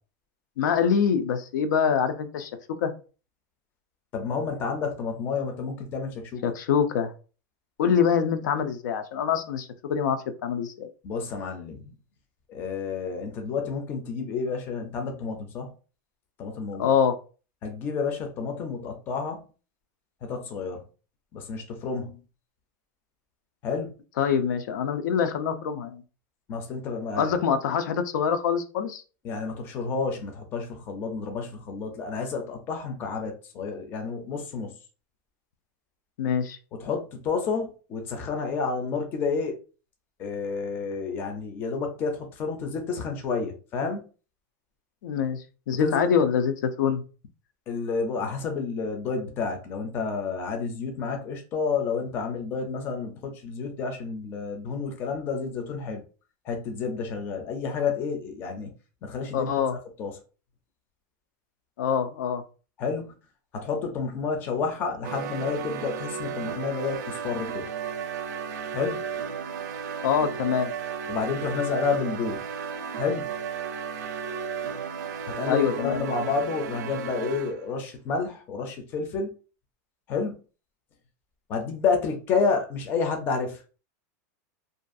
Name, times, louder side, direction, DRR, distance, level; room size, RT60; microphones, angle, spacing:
voice 1, 0.6-2.5 2.8-2.9 6.4-7.1 7.8-10.9 16.8-17.1 24.2-26.0 27.2-29.0 36.2-36.6 45.0-47.0 59.3-59.8 61.8-62.4 70.0-70.7 75.5-76.3, left 7 dB, 85° left, 0.4 m, -25 dB
voice 2, 4.1-6.4 11.0-11.9 12.5-15.7 16.4-17.0 17.6-19.4 20.2-20.8 21.3-22.2 23.6-23.9 26.5-27.3 29.2-34.7 36.8-39.6 40.2-44.0 45.8-46.1 47.7-56.0 56.4-58.7 59.0-59.5 60.0-60.1 62.8-63.1 63.5-67.7 68.7-69.1 71.1-72.4 73.0-73.3 75.3-79.3 80.1-80.3 81.5-83.6, left 5 dB, 20° left, 0.4 m, -30 dB
sound 1, 65.0-77.7, right 7 dB, 70° right, 0.4 m, -34 dB
2.5 x 2.3 x 2.5 m
supercardioid pair, 175°, 10 cm